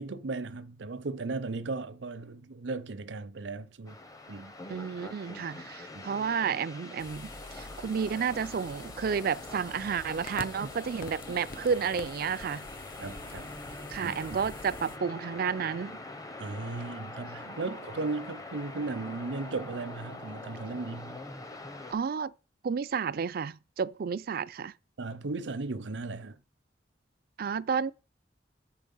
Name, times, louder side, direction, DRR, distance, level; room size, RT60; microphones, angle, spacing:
voice 1, 0.0-4.0 4.3-4.6 5.9-6.1 10.6-10.7 13.0-13.5 14.0-14.2 16.4-21.2 25.0-26.4, right 3 dB, 85° right, 0.7 m, -36 dB
sound 1, 3.9-21.9, left 2 dB, 20° left, 0.8 m, -44 dB
voice 2, 4.7-12.7 13.9-16.0 17.4-17.6 21.9-22.3 22.6-24.7 27.4-27.9, right 6 dB, 55° right, 0.4 m, -31 dB
sound 2, 7.0-15.0, left 3 dB, 55° left, 0.7 m, -47 dB
8.1 x 4.6 x 5.5 m
head